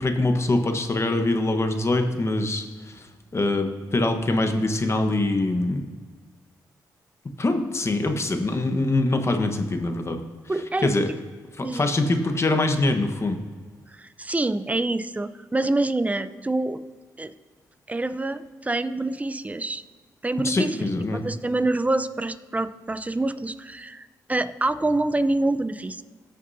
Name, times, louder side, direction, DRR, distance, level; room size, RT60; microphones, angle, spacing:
voice 1, 0.0-5.9 7.4-10.2 10.8-11.1 11.5-13.4 20.4-21.2, left 2 dB, 35° left, 6 dB, 1.2 m, -24 dB
voice 2, 10.5-10.9 11.6-11.9 13.9-16.8 17.2-17.3 17.9-19.8 20.2-20.9 21.2-26.0, right 2 dB, 20° right, 12 dB, 0.7 m, -26 dB
17.5 x 6.6 x 2.7 m, 1.5 s
cardioid pair, 55°, 7 cm